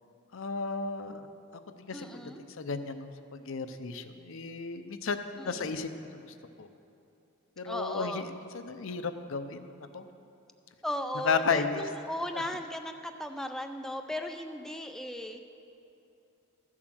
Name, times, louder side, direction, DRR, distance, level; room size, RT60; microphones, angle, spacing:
voice 1, 0.3-1.2 1.8-2.1 2.6-5.2 5.4-5.9 6.6-6.7 7.6-8.2 8.7-10.1 11.3-11.8, left 5 dB, 65° left, 9 dB, 0.6 m, -33 dB
voice 2, 1.9-2.4 5.4-5.7 7.6-8.3 10.8-15.4, left 1 dB, ahead, 5 dB, 0.4 m, -37 dB
14.0 x 7.5 x 6.2 m, 2.8 s
head